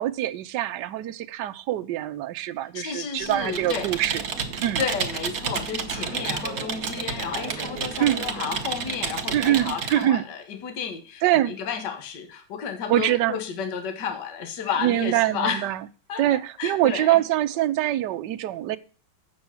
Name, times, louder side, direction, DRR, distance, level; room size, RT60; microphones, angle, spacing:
voice 1, 0.0-4.2 4.6-4.8 8.0-8.2 9.3-10.2 11.2-11.5 12.9-13.4 14.8-15.8 16.2-18.8, right 13 dB, 70° right, 9 dB, 1.3 m, -24 dB
voice 2, 2.7-3.9 4.8-15.7 16.1-16.2 16.6-17.2, left 7 dB, 60° left, 6 dB, 1.9 m, -32 dB
Computer keyboard, 3.2-10.0, right 6 dB, 50° right, 1.5 m, -31 dB
8.3 x 6.1 x 7.2 m, 0.38 s
omnidirectional pair, 2.1 m